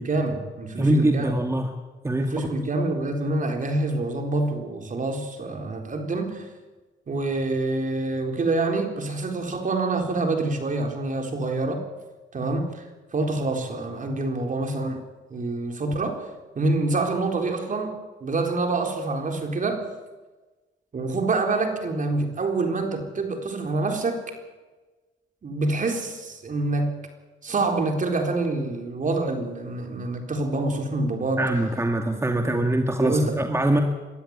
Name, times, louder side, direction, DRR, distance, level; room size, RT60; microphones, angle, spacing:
voice 1, 0.0-1.3 2.2-6.5 7.1-11.8 12.3-15.0 15.3-16.2 16.6-17.9 18.2-19.8 20.9-24.2 25.4-26.9 27.4-31.5 32.4-32.6 33.0-33.4, right 2 dB, 40° right, 4 dB, 4.1 m, -26 dB
voice 2, 0.8-1.7 2.0-2.5 31.4-33.8, right 1 dB, 15° right, 4 dB, 2.0 m, -23 dB
22.5 x 13.0 x 9.6 m, 1.2 s
cardioid pair, 90°, 20 cm